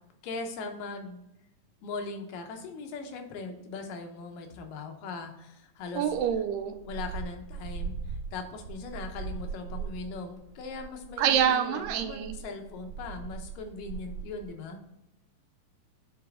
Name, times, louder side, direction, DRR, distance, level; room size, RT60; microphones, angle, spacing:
voice 1, 0.2-1.2 1.8-6.1 6.8-14.8, left 3 dB, 80° left, 4 dB, 2.6 m, -40 dB
sound 1, 6.0-14.5, right 5 dB, 45° right, 2.2 m, -40 dB
voice 2, 6.0-6.8 11.2-12.4, right 9 dB, 80° right, 7 dB, 2.3 m, -26 dB
8.4 x 4.0 x 3.6 m, 0.88 s
omnidirectional pair, 3.8 m